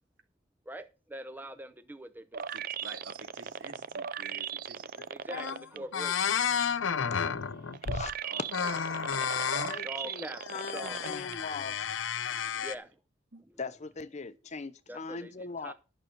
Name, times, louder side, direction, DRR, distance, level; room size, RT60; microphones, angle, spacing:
voice 1, 0.7-2.5 5.1-6.2 9.8-11.2 12.3-12.9 14.9-15.3 15.6-15.7, right 1 dB, 10° right, 0.7 m, -43 dB
sound 1, 2.3-5.8 6.2-11.3 11.8-11.9, right 8 dB, 50° right, 0.5 m, -38 dB
voice 2, 2.5-5.1 5.7-5.9 8.2-8.8 12.5-12.7 13.3-13.4, right 3 dB, 75° right, 2.3 m, -49 dB
sound 2, 5.0-5.1 5.3-5.6 5.9-8.1 8.5-9.8 10.4-12.7, left 7 dB, 85° left, 0.7 m, -32 dB
voice 3, 8.6-9.2 9.7-11.9 13.6-15.7, left 4 dB, 40° left, 0.7 m, -41 dB
11.5 x 6.3 x 6.7 m
head